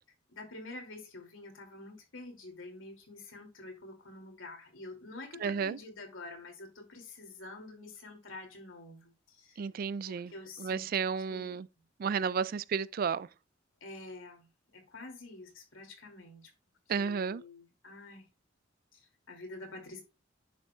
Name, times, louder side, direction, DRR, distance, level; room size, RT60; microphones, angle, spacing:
voice 1, 0.3-9.6 10.0-10.9 11.3-11.6 13.8-14.5 14.7-16.5 17.0-18.2 18.9-20.0, left 2 dB, 85° left, 2.8 m, -47 dB
voice 2, 5.4-5.8 9.6-10.3 10.6-11.7 12.0-13.3 16.9-17.4, right 6 dB, 50° right, 0.3 m, -32 dB
10.0 x 6.4 x 2.4 m
head